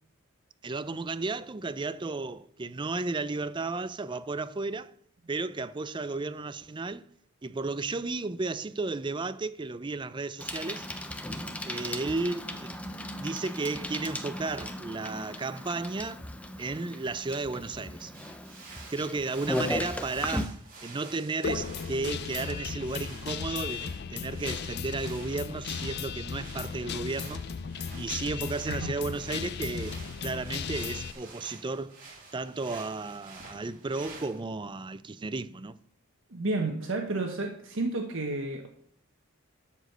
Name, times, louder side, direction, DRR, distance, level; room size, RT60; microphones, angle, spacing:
voice 1, 0.6-4.9 5.3-7.1 7.4-10.9 11.6-12.7 13.2-16.2 16.6-18.1 18.9-27.4 28.0-32.0 32.3-35.8, right 3 dB, 20° right, 0.4 m, -34 dB
Bicycle, 10.4-20.5, left 1 dB, 5° left, 0.7 m, -37 dB
sound 1, 18.1-34.4, right 4 dB, 40° right, 3.2 m, -49 dB
Guitar, 21.4-31.1, left 6 dB, 50° left, 0.4 m, -36 dB
voice 2, 36.3-38.7, right 2 dB, 60° right, 1.3 m, -31 dB
12.0 x 5.0 x 6.7 m
head